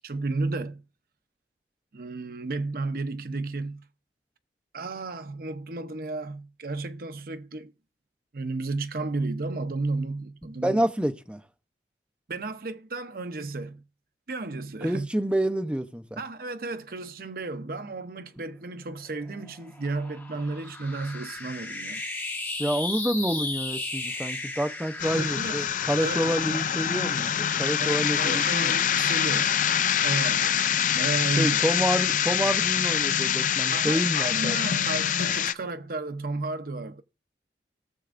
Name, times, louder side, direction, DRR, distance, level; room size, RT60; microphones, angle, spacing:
voice 1, 0.0-0.8 1.9-3.8 4.7-7.7 8.3-10.8 12.3-13.8 14.3-15.1 16.2-22.0 25.1-25.6 26.0-26.2 27.8-29.5 30.0-30.6 30.9-31.6 33.7-37.0, right 3 dB, 55° right, 0.7 m, -33 dB
voice 2, 10.6-11.4 14.8-16.2 22.6-28.8 31.4-34.6, equal, 5° right, 0.6 m, -28 dB
sound 1, 18.9-27.5, left 2 dB, 10° left, 1.4 m, -36 dB
sound 2, 25.0-35.5, left 9 dB, 45° left, 0.4 m, -25 dB
18.0 x 7.1 x 2.5 m
head